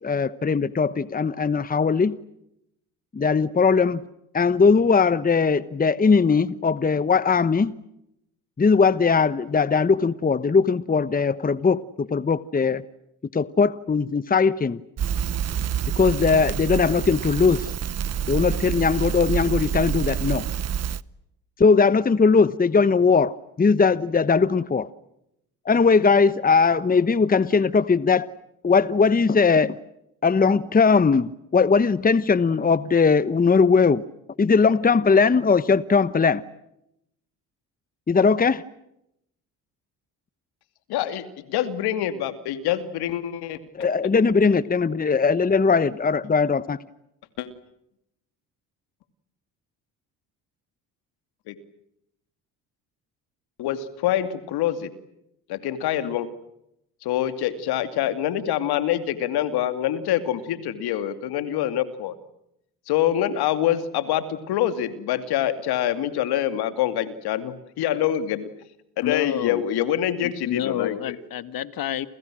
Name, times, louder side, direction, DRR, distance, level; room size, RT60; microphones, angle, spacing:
voice 1, 0.0-2.2 3.1-4.0 4.3-7.7 8.6-12.8 13.3-14.8 16.0-17.7 18.3-20.5 21.6-24.9 25.6-28.3 28.6-29.8 30.2-34.0 34.4-36.4 38.1-38.6 43.7-46.8, left 5 dB, 20° left, 1.1 m, -19 dB
Crackle, 15.0-21.0, right 9 dB, 40° right, 0.9 m, -27 dB
voice 2, 40.9-43.6 47.4-47.5 51.5-51.6 53.6-54.9 55.5-56.3 57.0-62.2 62.9-68.5 69.0-71.2, left 11 dB, 75° left, 2.6 m, -25 dB
voice 3, 69.0-69.6 70.2-72.1, left 11 dB, 60° left, 1.9 m, -28 dB
29.5 x 28.5 x 6.3 m
supercardioid pair, 70°, 38 cm